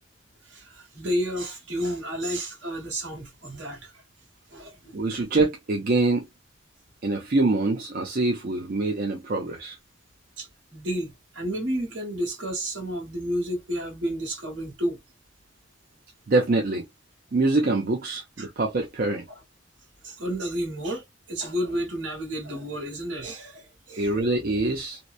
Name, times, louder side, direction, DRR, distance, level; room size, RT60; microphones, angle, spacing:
voice 1, 0.5-4.0 4.5-5.0 10.4-15.0 18.4-18.5 20.0-24.2, equal, 75° right, 1.5 m, -31 dB
voice 2, 4.9-6.2 7.0-9.8 16.3-16.8 17.3-19.2 24.0-25.0, right 2 dB, 50° right, 0.5 m, -24 dB
2.9 x 2.1 x 2.3 m
head